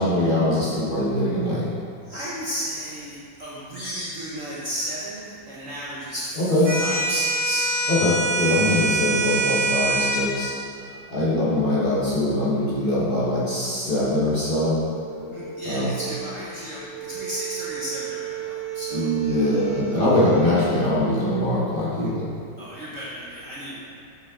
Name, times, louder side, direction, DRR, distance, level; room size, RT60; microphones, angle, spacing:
voice 1, 0.0-1.7 6.4-6.7 7.9-10.5 11.1-14.8 15.6-15.9 18.9-22.3, left 1 dB, 30° left, -9 dB, 1.2 m, -22 dB
voice 2, 2.0-7.7 8.7-8.8 9.7-10.0 15.3-20.3 22.6-23.9, equal, 55° right, -7 dB, 1.0 m, -34 dB
sound 1, 6.7-10.2, right 3 dB, 30° right, 1.5 m, -24 dB
sound 2, 14.4-20.5, right 8 dB, 80° right, 1.8 m, -34 dB
7.7 x 5.1 x 3.7 m, 2.4 s
omnidirectional pair, 2.1 m